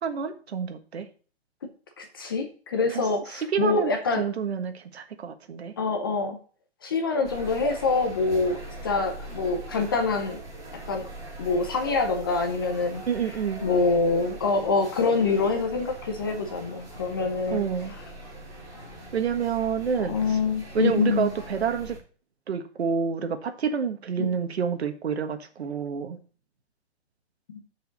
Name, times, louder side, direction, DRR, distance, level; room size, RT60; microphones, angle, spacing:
voice 1, 0.0-1.1 2.9-3.0 3.3-3.9 4.2-5.7 13.1-13.7 17.5-17.9 19.1-20.4 20.7-22.0 22.5-26.2, right 7 dB, 70° right, 8 dB, 1.4 m, -28 dB
voice 2, 2.0-4.3 5.8-6.4 6.8-10.4 10.9-11.1 11.4-13.0 13.6-17.6 20.0-21.3 24.2-24.3 27.5-27.6, left 4 dB, 20° left, 5 dB, 0.6 m, -25 dB
sound 1, 7.2-22.0, right 1 dB, 10° right, 2.9 m, -42 dB
6.5 x 4.9 x 6.5 m, 0.40 s
hypercardioid pair, 170°, 33 cm